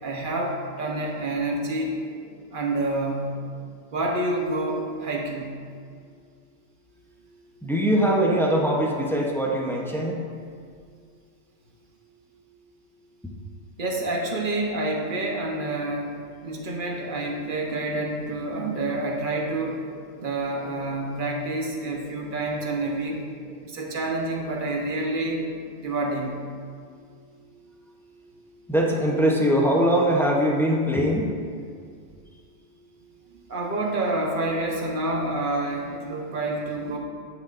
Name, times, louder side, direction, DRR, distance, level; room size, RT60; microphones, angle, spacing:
voice 1, 0.0-1.9 2.5-3.3 3.9-5.6 13.8-16.2 16.4-19.8 20.2-23.2 23.6-25.4 25.8-26.3 33.5-37.0, right 2 dB, 45° right, 0 dB, 1.0 m, -28 dB
voice 2, 7.6-10.2 22.0-22.4 22.9-23.2 23.9-24.0 25.0-25.4 28.7-31.3, equal, 5° left, -2 dB, 0.5 m, -22 dB
11.5 x 6.3 x 2.5 m, 2.1 s
omnidirectional pair, 1.4 m